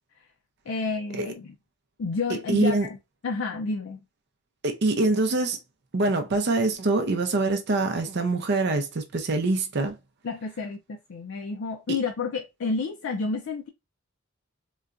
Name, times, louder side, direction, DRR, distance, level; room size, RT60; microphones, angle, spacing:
voice 1, 0.7-1.5 2.0-2.8 3.2-4.0 10.2-13.7, left 4 dB, 65° left, 0.4 m, -30 dB
voice 2, 2.5-2.9 4.6-5.6 5.9-10.0, right 2 dB, 50° right, 0.5 m, -24 dB
3.8 x 2.2 x 2.4 m
head